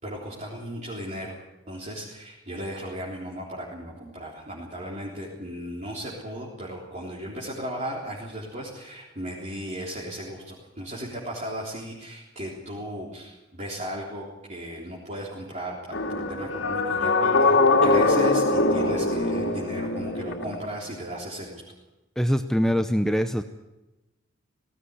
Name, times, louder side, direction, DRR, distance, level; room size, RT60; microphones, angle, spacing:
voice 1, 0.0-1.4 1.7-21.6, equal, 35° right, -5 dB, 3.8 m, -36 dB
sound 1, 15.9-20.7, left 2 dB, 70° left, 2.3 m, -22 dB
voice 2, 22.2-23.4, equal, 5° left, 8 dB, 0.7 m, -23 dB
18.5 x 17.0 x 9.7 m, 1.0 s
head